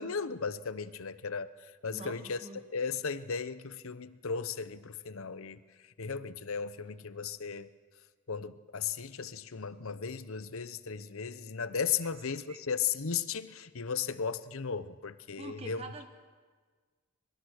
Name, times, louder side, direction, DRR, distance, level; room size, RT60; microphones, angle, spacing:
voice 1, 0.0-2.4 2.7-5.6 6.0-7.7 8.3-15.8, left 6 dB, 70° left, 14 dB, 0.8 m, -36 dB
voice 2, 1.9-2.6 12.0-12.1 12.5-12.6 15.4-16.1, right 2 dB, 25° right, 6 dB, 1.2 m, -45 dB
24.5 x 23.0 x 6.5 m, 1.5 s
head